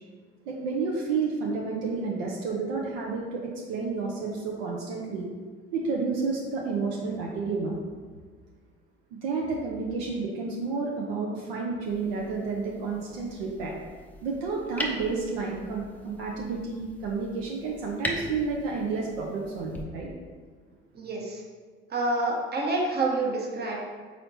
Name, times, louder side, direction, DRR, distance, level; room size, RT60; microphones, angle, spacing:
voice 1, 0.5-5.3 5.7-7.8 9.2-13.7 14.2-20.1, right 4 dB, 70° right, -2 dB, 0.6 m, -30 dB
sound 1, 11.8-19.8, equal, 5° left, 0.6 m, -40 dB
voice 2, 20.9-21.4 21.9-23.8, right 2 dB, 30° right, -1 dB, 1.1 m, -27 dB
4.2 x 4.2 x 2.7 m, 1.5 s
figure-of-eight pair, 55°, 31 cm